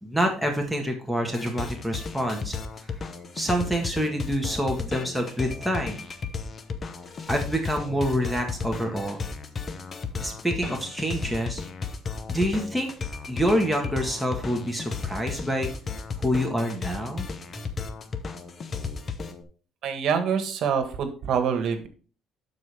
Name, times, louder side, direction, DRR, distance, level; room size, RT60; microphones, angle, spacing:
voice 1, 0.0-2.5 3.3-6.0 7.3-9.2 10.2-11.6 12.3-12.9 13.3-15.7 16.2-17.3, equal, 5° left, 3 dB, 1.6 m, -27 dB
sound 1, 1.3-19.4, left 5 dB, 35° left, 0.9 m, -34 dB
voice 2, 19.8-21.9, right 7 dB, 65° right, 8 dB, 1.5 m, -25 dB
12.0 x 4.7 x 3.5 m, 0.39 s
cardioid pair, 110°, 0 cm